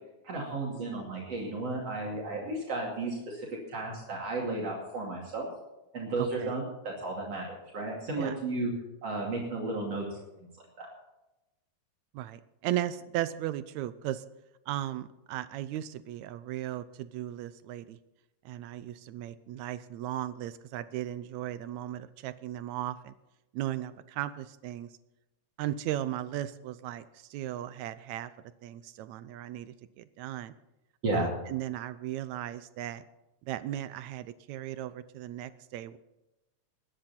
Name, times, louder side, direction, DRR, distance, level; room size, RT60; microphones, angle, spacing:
voice 1, 0.2-5.5 5.9-8.7 9.0-10.2 10.8-10.9 31.0-31.3, right 2 dB, 55° right, -2 dB, 3.6 m, -33 dB
voice 2, 6.2-6.6 8.2-8.4 12.1-14.2 14.7-18.0 18.5-23.1 23.5-24.9 25.6-28.3 28.6-30.5 31.1-33.0 33.4-36.0, right 13 dB, 80° right, 14 dB, 1.9 m, -36 dB
21.0 x 10.5 x 4.3 m, 0.98 s
omnidirectional pair, 3.3 m